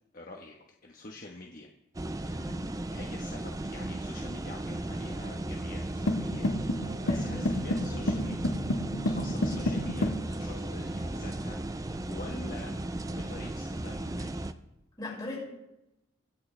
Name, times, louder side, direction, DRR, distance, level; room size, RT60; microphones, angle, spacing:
voice 1, 0.1-0.5 0.8-1.7 2.2-2.6 2.9-6.5 6.8-8.7 9.0-12.8 13.1-14.5, left 2 dB, 45° left, 0 dB, 1.2 m, -46 dB
sound 1, 1.9-14.5, right 1 dB, 15° right, 0.4 m, -36 dB
sound 2, 5.3-11.2, equal, 75° right, 3.2 m, -46 dB
sound 3, 6.1-10.2, left 1 dB, 85° left, 1.3 m, -30 dB
voice 2, 7.0-7.5 15.0-15.4, left 2 dB, 20° left, -5 dB, 5.4 m, -39 dB
24.5 x 8.6 x 3.3 m, 0.92 s
head